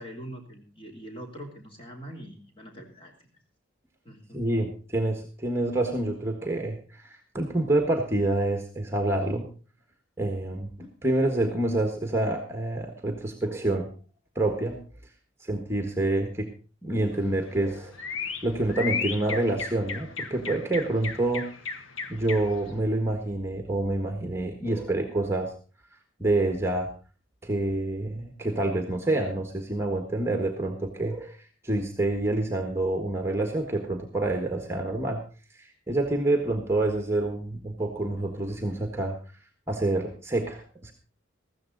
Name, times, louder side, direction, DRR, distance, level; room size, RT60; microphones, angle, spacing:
voice 1, 0.0-3.3 4.0-4.4, equal, 25° left, 2 dB, 3.2 m, -43 dB
voice 2, 4.3-9.5 10.2-13.9 14.3-14.8 15.4-16.5 16.8-21.5 22.1-25.5 26.2-26.9 27.4-35.2 35.5-39.2 39.7-40.9, right 2 dB, 15° right, 5 dB, 1.5 m, -27 dB
sound 1, 17.1-22.7, left 5 dB, 75° left, 1.4 m, -35 dB
15.0 x 14.0 x 4.0 m, 0.36 s
head